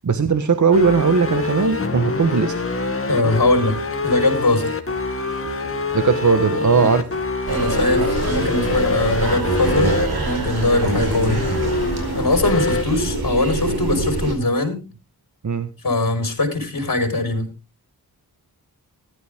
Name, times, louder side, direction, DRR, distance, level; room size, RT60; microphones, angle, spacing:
voice 1, 0.0-2.5 5.9-7.1 8.0-8.3 15.4-15.7, right 5 dB, 50° right, 10 dB, 1.4 m, -18 dB
sound 1, 0.7-12.8, left 3 dB, 35° left, 2.3 m, -25 dB
voice 2, 3.1-3.8 4.0-4.8 6.8-6.9 7.5-9.9 10.2-11.4 12.1-14.8 15.8-17.5, left 2 dB, 60° left, 4 dB, 4.4 m, -21 dB
sound 2, 7.5-14.3, right 2 dB, 75° right, 4.8 m, -24 dB
14.5 x 11.5 x 3.6 m, 0.30 s
cardioid pair, 60°, 38 cm